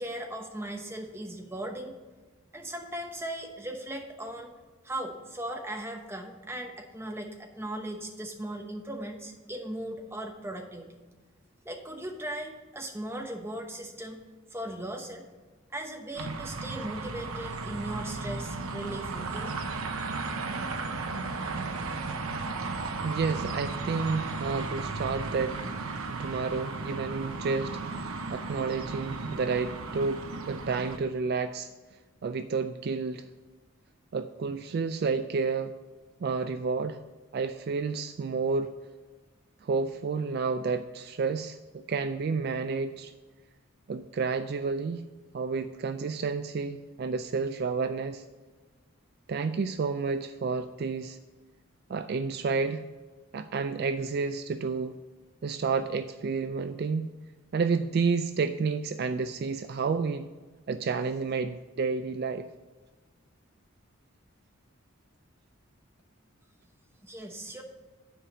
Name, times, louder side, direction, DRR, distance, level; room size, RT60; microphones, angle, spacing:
voice 1, 0.0-2.0 2.5-4.5 4.8-11.0 11.6-14.2 14.5-15.3 15.7-19.6 67.0-67.6, right 1 dB, 10° right, 2 dB, 1.0 m, -38 dB
sound 1, 16.2-31.0, right 3 dB, 90° right, 0.8 m, -35 dB
voice 2, 23.0-25.6 26.1-31.7 32.2-33.3 34.1-35.7 36.2-37.0 37.3-38.7 39.6-43.1 43.9-45.0 45.3-48.2 49.3-51.2 51.9-52.8 53.3-55.0 55.4-57.1 57.5-60.3 60.7-62.5, right 4 dB, 50° right, 10 dB, 0.3 m, -30 dB
10.0 x 4.9 x 6.1 m, 1.3 s
head